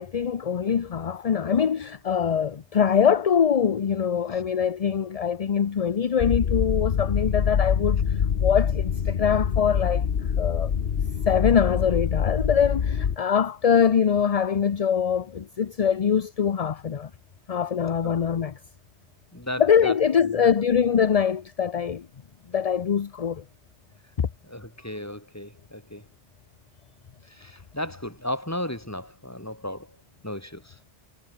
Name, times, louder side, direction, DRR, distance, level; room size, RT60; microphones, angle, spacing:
voice 1, 0.0-10.0 10.4-10.7 11.3-17.1 17.5-18.6 19.6-22.1 22.5-23.4 24.2-24.3, left 7 dB, 40° left, 0.6 m, -23 dB
sound 1, 6.2-13.2, left 7 dB, 60° left, 1.1 m, -25 dB
voice 2, 19.3-19.9 20.4-20.5 24.5-26.0 27.4-29.9 30.2-30.7, left 1 dB, 15° left, 3.4 m, -34 dB
omnidirectional pair, 1.2 m